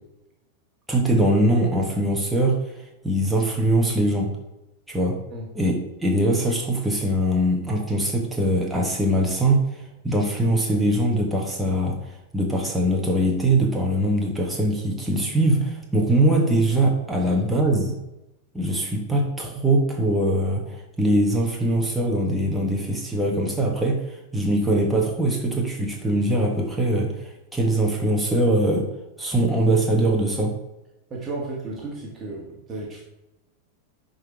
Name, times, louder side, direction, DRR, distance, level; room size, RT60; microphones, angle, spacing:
voice 1, 0.9-4.3 4.9-5.2 5.5-5.7 6.0-18.0 18.5-28.9 29.2-30.5, right 1 dB, 5° right, -1 dB, 1.3 m, -22 dB
voice 2, 31.1-33.0, right 2 dB, 20° right, -3 dB, 1.9 m, -33 dB
10.5 x 4.0 x 4.6 m, 0.94 s
figure-of-eight pair, 90°, 0 cm